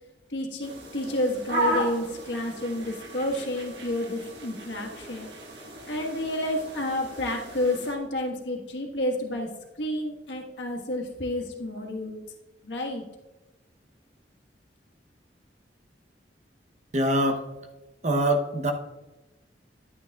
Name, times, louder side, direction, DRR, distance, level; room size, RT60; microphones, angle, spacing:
voice 1, 0.3-5.3 5.8-9.5 9.8-12.2 12.6-13.0, left 1 dB, 80° left, 1 dB, 1.4 m, -30 dB
sound 1, 0.6-8.0, right 1 dB, 75° right, 1.5 m, -35 dB
voice 2, 16.9-17.4 18.0-18.7, right 1 dB, 40° right, 4 dB, 0.8 m, -23 dB
11.0 x 8.9 x 2.4 m, 1.1 s
head